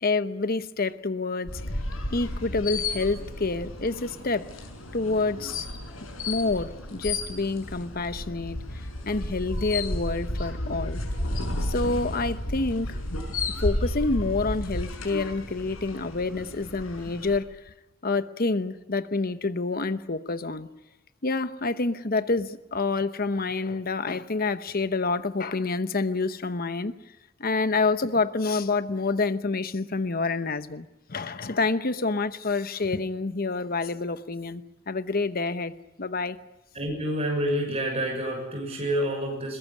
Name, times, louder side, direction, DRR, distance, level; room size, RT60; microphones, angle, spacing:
voice 1, 0.0-1.6 2.1-4.5 4.9-5.7 6.3-8.6 9.1-11.0 11.6-13.0 13.5-17.6 18.0-20.7 21.2-26.9 27.4-35.7 36.0-36.4, left 3 dB, 45° left, 12 dB, 0.9 m, -28 dB
sound 1, 1.5-17.4, left 2 dB, 80° left, 6.3 m, -33 dB
voice 2, 36.7-39.6, equal, 30° right, 1 dB, 6.7 m, -28 dB
21.5 x 21.5 x 9.6 m, 0.94 s
head